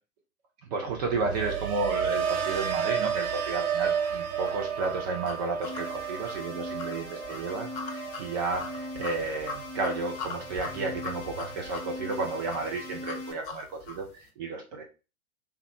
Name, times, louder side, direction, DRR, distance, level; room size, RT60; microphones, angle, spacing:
voice 1, 0.6-14.8, right 3 dB, 30° right, 2 dB, 0.5 m, -32 dB
sound 1, 0.9-11.0 11.3-11.8, right 7 dB, 75° right, 0.6 m, -33 dB
sound 2, 4.0-14.1, left 4 dB, 45° left, 0.8 m, -42 dB
sound 3, 5.6-13.3, left 2 dB, 5° left, 0.8 m, -41 dB
3.5 x 2.3 x 2.8 m, 0.31 s
figure-of-eight pair, 110°, 43 cm